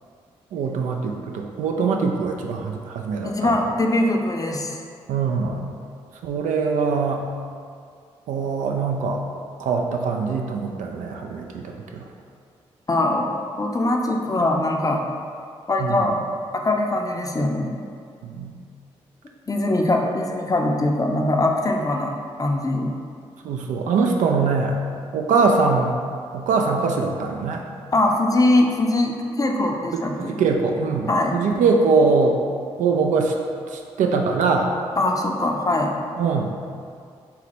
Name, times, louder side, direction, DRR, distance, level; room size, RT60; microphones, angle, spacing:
voice 1, 0.5-3.6 5.1-5.7 6.2-7.2 8.3-9.2 9.6-12.0 15.8-16.1 18.2-18.5 23.4-24.8 25.1-26.0 26.3-27.6 29.9-32.4 32.8-33.3 33.7-34.7 36.2-36.5, right 4 dB, 75° right, 2 dB, 0.4 m, -22 dB
voice 2, 3.2-4.8 12.9-15.1 15.7-16.1 16.5-17.8 19.5-22.9 27.9-30.3 31.1-31.4 35.0-35.9, left 2 dB, 25° left, 1 dB, 0.5 m, -22 dB
4.0 x 2.1 x 4.2 m, 2.2 s
hypercardioid pair, 40°, 13 cm